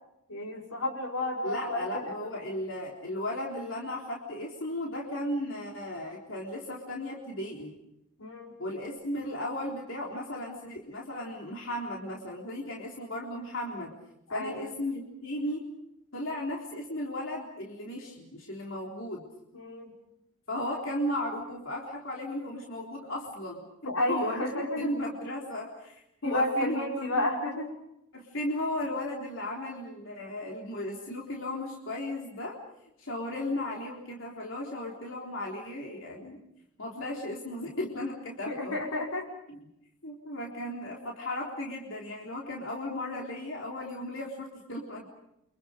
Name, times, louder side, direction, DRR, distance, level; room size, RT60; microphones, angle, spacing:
voice 1, 0.3-2.5 8.2-8.6 14.3-14.7 19.5-19.9 23.8-24.9 26.2-27.7 38.5-39.3, left 1 dB, 85° left, 0 dB, 5.4 m, -31 dB
voice 2, 1.4-7.7 8.6-13.9 14.3-15.7 16.1-19.2 20.5-23.6 24.1-27.3 28.1-32.6 33.0-36.4 36.8-38.8 39.5-39.7 40.0-45.1, left 1 dB, 60° left, -2 dB, 3.7 m, -35 dB
30.0 x 26.0 x 5.1 m, 0.81 s
head